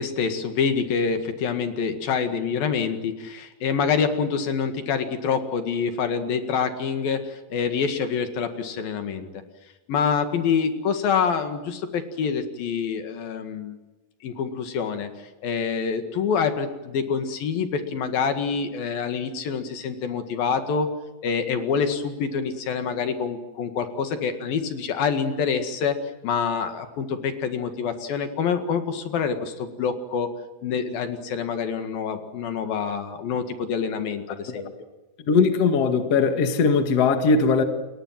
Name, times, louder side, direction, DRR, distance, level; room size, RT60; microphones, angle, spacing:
voice 1, 0.0-9.3 9.9-13.8 14.2-15.1 15.4-20.9 21.2-26.0 26.2-30.3 30.6-34.7, left 6 dB, 75° left, 8 dB, 3.7 m, -26 dB
voice 2, 35.3-37.6, left 4 dB, 45° left, 7 dB, 2.8 m, -20 dB
30.0 x 22.0 x 7.6 m, 1.1 s
omnidirectional pair, 4.2 m